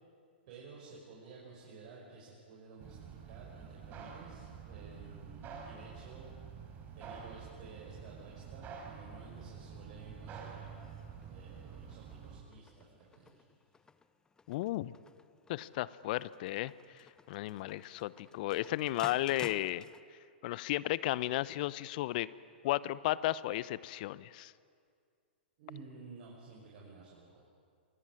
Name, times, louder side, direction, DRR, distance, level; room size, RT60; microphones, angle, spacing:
voice 1, 0.5-6.3 6.9-10.7 11.3-13.4 25.6-27.4, right 4 dB, 50° right, -3 dB, 6.2 m, -53 dB
sound 1, 2.8-12.4, right 6 dB, 30° right, 4.3 m, -48 dB
Spring hammer, 9.6-20.0, left 4 dB, 10° left, 0.8 m, -56 dB
voice 2, 14.5-14.9 15.5-19.9 20.4-22.3 22.6-24.5, left 16 dB, 50° left, 19 dB, 0.8 m, -34 dB
26.0 x 18.5 x 9.8 m, 2.2 s
hypercardioid pair, 110°, 6 cm